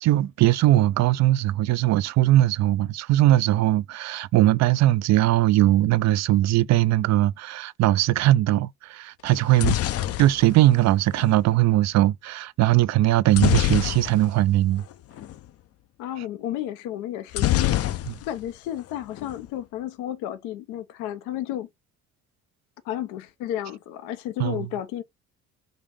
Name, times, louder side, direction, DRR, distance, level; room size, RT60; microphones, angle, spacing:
voice 1, 0.0-9.8 10.2-14.8 18.1-18.2 24.4-24.6, right 15 dB, 60° right, 0.4 m, -20 dB
sound 1, 9.3-11.4 13.3-14.5 14.8-14.9 15.2-15.4 17.3-18.5 18.8-19.4, left 14 dB, 50° left, 0.5 m, -25 dB
voice 2, 16.0-17.8 18.3-21.7 22.8-25.0, left 12 dB, 90° left, 0.7 m, -32 dB
5.1 x 2.6 x 3.6 m
supercardioid pair, 80°, 30 cm